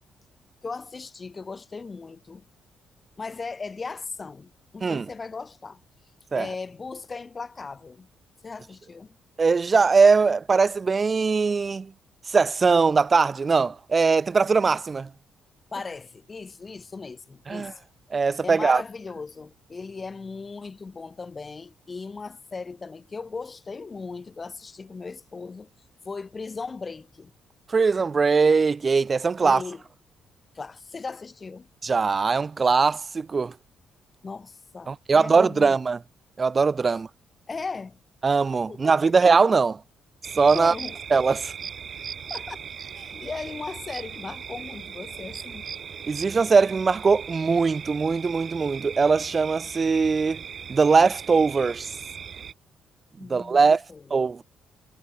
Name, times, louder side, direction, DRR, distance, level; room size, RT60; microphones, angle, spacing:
voice 1, 0.6-2.4 3.2-5.8 6.3-8.1 8.4-9.2 15.7-17.7 18.4-25.7 26.0-27.3 29.4-29.8 30.5-31.7 34.2-35.8 36.9-37.0 37.5-38.0 38.7-39.2 40.5-41.0 42.3-42.6 42.9-45.6 53.2-54.1, left 4 dB, 30° left, 2.8 m, -37 dB
voice 2, 9.4-11.9 12.3-15.1 17.5-17.7 18.1-18.8 27.7-29.6 31.8-33.5 34.9-36.0 36.4-37.1 38.2-39.8 40.4-40.7 41.1-41.5 46.1-50.4 50.7-51.9 53.3-53.8 54.1-54.4, right 4 dB, 35° right, 0.8 m, -21 dB
sound 1, 40.2-52.5, right 7 dB, 55° right, 5.0 m, -39 dB
cardioid pair, 90°, 0 cm